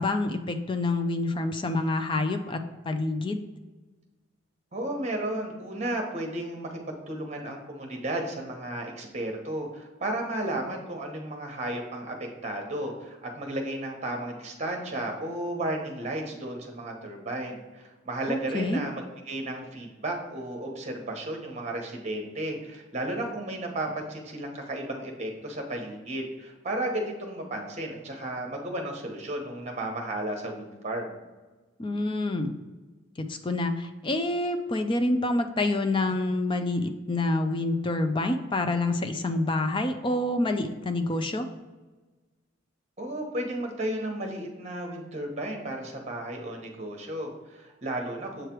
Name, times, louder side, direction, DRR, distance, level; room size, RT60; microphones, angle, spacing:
voice 1, 0.0-3.4 18.3-18.8 31.8-32.5 33.2-41.5, left 2 dB, 25° left, 7 dB, 0.4 m, -27 dB
voice 2, 4.7-31.2 43.0-48.5, right 1 dB, 35° right, 2 dB, 1.1 m, -33 dB
7.7 x 3.3 x 4.4 m, 1.2 s
head